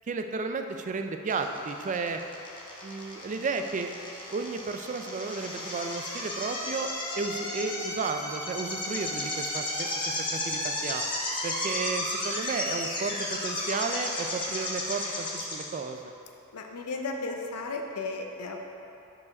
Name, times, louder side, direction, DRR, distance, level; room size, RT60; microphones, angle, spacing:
voice 1, 0.1-2.2 2.8-3.9 4.3-9.9 10.3-11.0 11.4-16.1, right 4 dB, 35° right, 6 dB, 0.3 m, -33 dB
sound 1, 1.3-15.6, left 1 dB, 20° left, 0.9 m, -33 dB
voice 2, 16.5-18.6, left 3 dB, 85° left, 3 dB, 0.6 m, -34 dB
4.9 x 4.8 x 5.2 m, 2.9 s
head